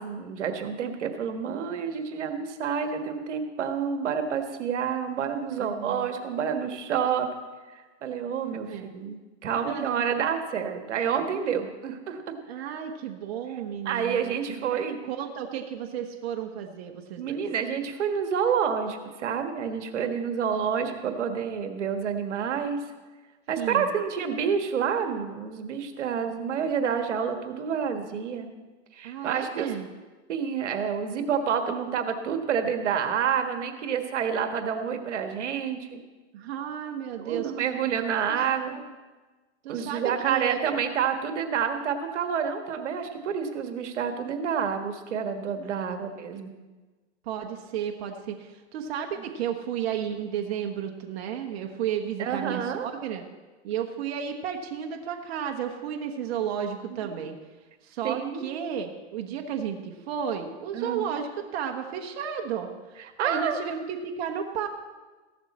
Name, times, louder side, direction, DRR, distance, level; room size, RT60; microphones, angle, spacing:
voice 1, 0.0-7.3 7.7-9.2 9.4-12.3 13.8-15.0 17.2-22.8 23.5-28.5 28.9-29.7 30.3-36.0 37.2-38.8 39.7-46.5 52.2-52.9 56.9-57.1 58.0-58.5 60.7-61.0 63.2-63.6, right 7 dB, 85° right, 7 dB, 1.6 m, -28 dB
voice 2, 5.6-6.1 8.4-8.9 9.5-10.0 12.5-14.8 15.1-17.4 23.6-23.9 29.0-29.9 36.3-37.5 38.3-38.4 38.7-38.9 39.6-40.8 45.6-46.0 47.2-53.2 53.6-57.4 57.8-64.7, right 8 dB, 60° right, 4 dB, 1.3 m, -33 dB
15.0 x 12.0 x 4.3 m, 1.3 s
hypercardioid pair, 125°, 35 cm